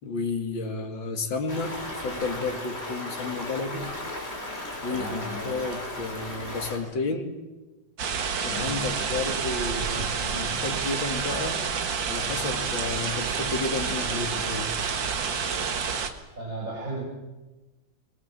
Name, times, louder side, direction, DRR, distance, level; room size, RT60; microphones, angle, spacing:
voice 1, 0.0-3.9 4.8-7.3 8.4-11.6 12.0-14.7, left 3 dB, 70° left, 4 dB, 2.9 m, -32 dB
Stream, 1.5-6.8, left 1 dB, 30° left, 4.8 m, -36 dB
voice 2, 4.9-5.7 8.5-8.8 16.4-17.0, right 1 dB, 40° right, -3 dB, 6.8 m, -35 dB
sound 1, 8.0-16.1, right 6 dB, 70° right, 2.3 m, -29 dB
24.5 x 21.5 x 7.5 m, 1.1 s
omnidirectional pair, 2.1 m